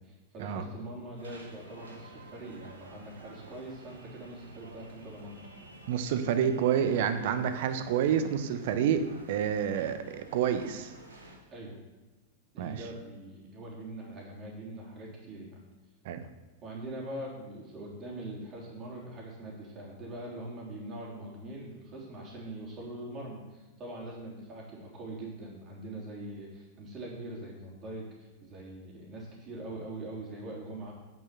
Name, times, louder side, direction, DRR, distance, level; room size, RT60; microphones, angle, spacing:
voice 1, 0.0-5.4 11.5-11.8 12.5-15.6 16.6-30.9, right 1 dB, 30° right, -3 dB, 3.4 m, -42 dB
sound 1, 1.2-11.4, right 2 dB, 75° right, 1.7 m, -51 dB
voice 2, 5.9-10.9 12.6-12.8 16.0-16.2, right 8 dB, 55° right, 10 dB, 0.9 m, -28 dB
8.8 x 6.7 x 5.8 m, 1.2 s
figure-of-eight pair, 95°, 0 cm